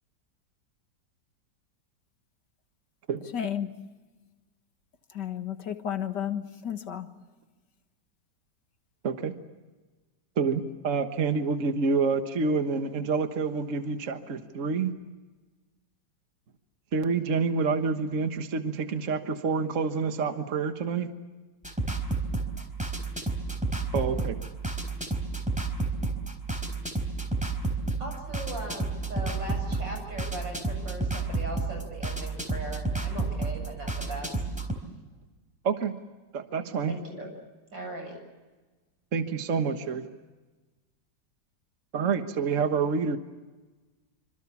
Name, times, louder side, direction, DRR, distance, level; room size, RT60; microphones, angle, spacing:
voice 1, 3.3-3.7 5.2-7.1, left 9 dB, 70° left, 8 dB, 2.1 m, -32 dB
voice 2, 10.4-14.9 16.9-21.1 23.9-24.4 35.6-35.9 36.3-37.0 39.1-40.1 41.9-43.2, right 5 dB, 45° right, 7 dB, 1.7 m, -27 dB
sound 1, 21.6-34.7, right 3 dB, 5° right, 4.0 m, -31 dB
voice 3, 28.0-34.4 36.9-37.3 37.7-38.2, right 1 dB, 90° right, 3 dB, 8.4 m, -39 dB
26.5 x 26.0 x 7.2 m, 1.2 s
omnidirectional pair, 1.9 m